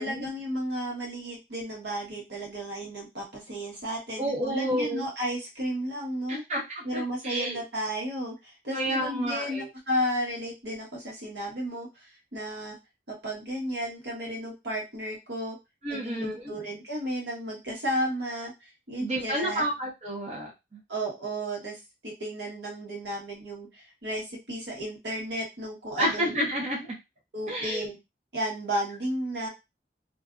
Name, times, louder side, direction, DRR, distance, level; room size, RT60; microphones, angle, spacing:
voice 1, 0.0-6.4 6.8-11.9 12.3-12.8 13.1-15.6 15.9-19.6 20.9-21.8 22.0-26.3 27.3-28.0 28.3-29.5, equal, 80° right, -2 dB, 1.2 m, -33 dB
voice 2, 4.2-5.1 6.5-7.6 8.7-9.7 15.8-16.5 19.0-20.8 26.0-26.9 27.5-27.9, right 1 dB, 35° right, -3 dB, 0.7 m, -30 dB
2.5 x 2.3 x 2.4 m, 0.23 s
head